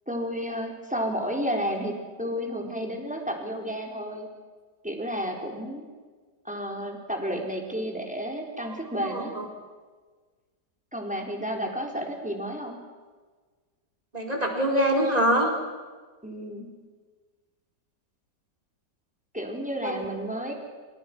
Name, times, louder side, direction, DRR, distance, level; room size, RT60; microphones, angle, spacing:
voice 1, 0.1-4.3 4.8-5.9 6.4-9.3 10.9-12.8 16.2-16.7 19.3-20.5, equal, 5° right, 1 dB, 4.2 m, -31 dB
voice 2, 9.0-9.4 14.1-15.5 19.8-20.0, right 1 dB, 20° right, 1 dB, 4.7 m, -24 dB
28.5 x 26.5 x 6.2 m, 1.4 s
omnidirectional pair, 1.9 m